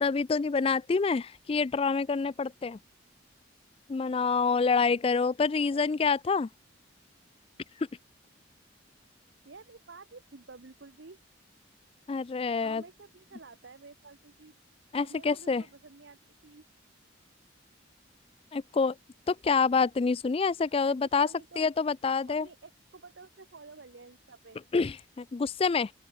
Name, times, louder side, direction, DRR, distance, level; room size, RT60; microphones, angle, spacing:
voice 1, 0.0-2.8 3.9-6.5 12.1-12.8 14.9-15.6 18.5-19.0 19.3-21.3 21.6-22.5 24.7-25.9, left 5 dB, 30° left, 0.3 m, -27 dB
voice 2, 9.4-11.2 12.6-14.5 15.0-16.6 20.9-21.7 22.3-24.6, right 4 dB, 65° right, 0.9 m, -51 dB
open air
head